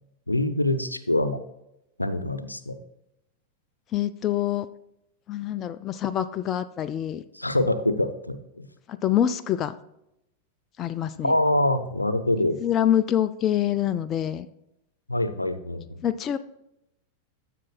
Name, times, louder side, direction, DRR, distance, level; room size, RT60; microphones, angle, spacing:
voice 1, 0.3-1.4 2.0-2.8 7.3-8.7 11.2-12.6 15.1-16.1, left 1 dB, 85° left, 11 dB, 0.6 m, -25 dB
voice 2, 3.9-4.7 5.3-7.2 8.9-9.7 10.8-11.3 12.6-14.5 16.0-16.4, left 11 dB, 30° left, 12 dB, 0.4 m, -25 dB
15.0 x 5.9 x 2.2 m, 0.83 s
figure-of-eight pair, 90°, 0 cm